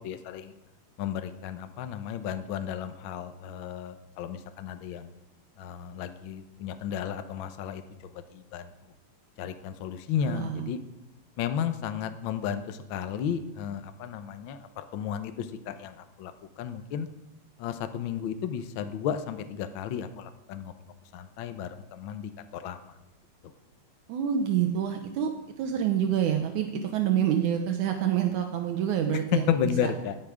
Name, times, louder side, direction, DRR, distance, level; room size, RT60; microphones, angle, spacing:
voice 1, 0.0-0.5 1.0-5.1 5.6-7.8 8.3-8.7 9.4-10.8 11.4-16.3 16.6-17.1 17.6-20.7 21.1-22.8 29.5-30.1, left 8 dB, 85° left, 9 dB, 1.1 m, -33 dB
voice 2, 10.3-10.7 24.1-25.3 25.6-29.9, right 9 dB, 80° right, 5 dB, 2.4 m, -27 dB
18.0 x 11.0 x 5.0 m, 0.98 s
omnidirectional pair, 3.5 m